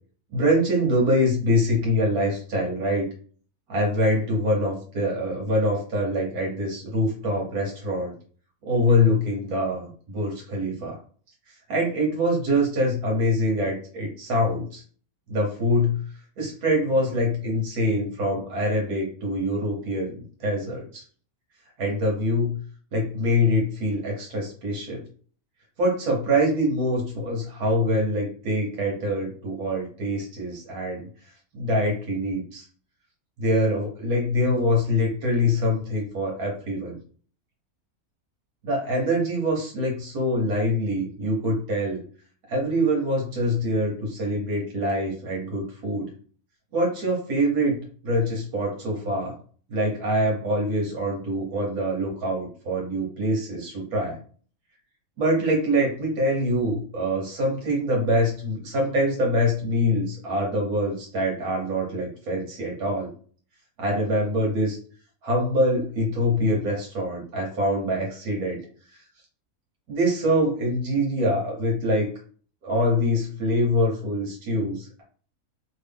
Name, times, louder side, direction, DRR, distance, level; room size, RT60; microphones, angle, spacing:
voice 1, 0.3-3.1 3.7-8.1 8.6-11.0 11.7-14.8 15.3-16.0 16.4-21.0 21.8-22.5 22.9-25.0 25.8-31.1 31.5-32.6 33.4-37.0 38.6-42.0 42.5-46.1 46.7-47.8 48.0-49.3 49.7-54.2 55.2-63.1 63.8-64.8 65.2-68.6 69.9-72.1 72.6-75.0, equal, 90° right, -2 dB, 1.5 m, -24 dB
3.1 x 2.5 x 3.4 m, 0.44 s
omnidirectional pair, 1.6 m